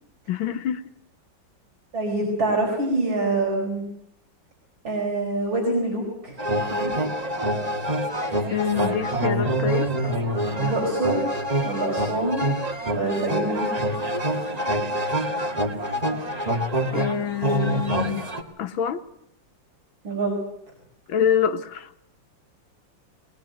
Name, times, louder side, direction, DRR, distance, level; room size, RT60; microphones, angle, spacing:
voice 1, 0.3-0.8 8.5-10.1 16.9-18.3 18.6-19.0 21.1-21.9, left 8 dB, 85° left, 10 dB, 2.0 m, -26 dB
voice 2, 1.9-3.8 4.8-6.3 6.6-6.9 10.6-12.4 12.9-13.7 20.0-20.4, right 2 dB, 90° right, -1 dB, 5.6 m, -25 dB
sound 1, 6.4-18.4, right 1 dB, 20° right, 1.8 m, -26 dB
21.0 x 20.5 x 9.2 m, 0.76 s
omnidirectional pair, 2.1 m